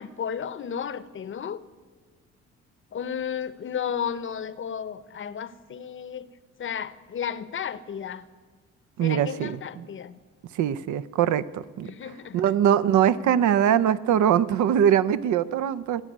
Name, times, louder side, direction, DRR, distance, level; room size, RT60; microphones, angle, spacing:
voice 1, 0.0-1.6 2.9-6.3 6.6-8.2 9.0-10.2 11.8-12.5, left 8 dB, 40° left, 16 dB, 0.7 m, -33 dB
voice 2, 9.0-9.9 10.5-11.9 12.3-16.0, right 9 dB, 75° right, 15 dB, 0.6 m, -22 dB
14.5 x 7.4 x 9.9 m, 1.5 s
cardioid pair, 90°, 30 cm